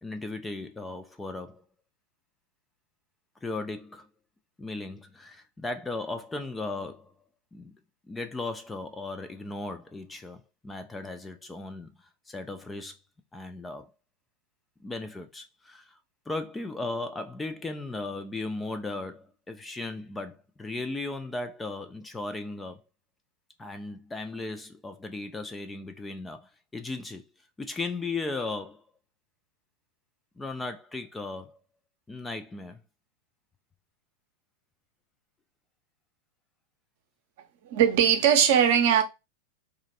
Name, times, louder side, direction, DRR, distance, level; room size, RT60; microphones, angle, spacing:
voice 1, 0.0-1.6 3.4-4.1 4.6-7.1 7.5-7.7 8.1-11.9 12.3-13.0 13.3-13.9 14.8-16.0 16.3-22.8 23.6-27.2 27.6-28.8 30.4-31.6 32.1-32.8, left 3 dB, 10° left, 0.3 m, -36 dB
voice 2, 37.6-39.0, right 9 dB, 50° right, 0.6 m, -20 dB
2.9 x 2.4 x 2.7 m
figure-of-eight pair, 90°, 0 cm